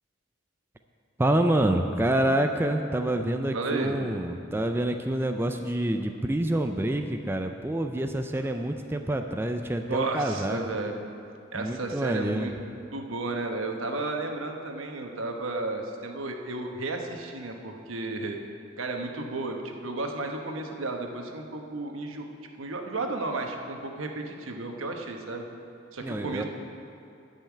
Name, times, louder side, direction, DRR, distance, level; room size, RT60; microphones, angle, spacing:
voice 1, 1.2-10.6 11.5-12.5 26.0-26.4, right 1 dB, 10° right, 5 dB, 0.3 m, -27 dB
voice 2, 3.5-4.1 8.8-8.9 9.9-11.1 11.5-12.5 12.9-18.4 18.8-22.3 22.6-25.4 25.9-26.4, right 2 dB, 80° right, 3 dB, 1.1 m, -33 dB
10.5 x 5.6 x 8.4 m, 2.5 s
head